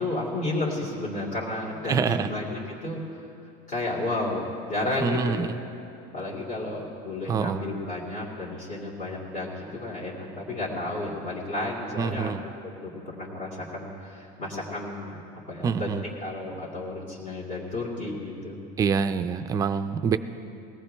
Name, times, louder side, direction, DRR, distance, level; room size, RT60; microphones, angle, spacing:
voice 1, 0.0-3.0 3.7-5.5 6.1-12.3 12.6-15.1 15.5-18.6, left 2 dB, 45° left, -5 dB, 2.5 m, -32 dB
voice 2, 1.9-2.3 5.0-5.5 7.3-7.6 12.0-12.4 15.6-16.0 18.8-20.2, right 6 dB, 20° right, 10 dB, 0.4 m, -25 dB
21.5 x 17.5 x 3.4 m, 2.7 s
cardioid pair, 170°, 18 cm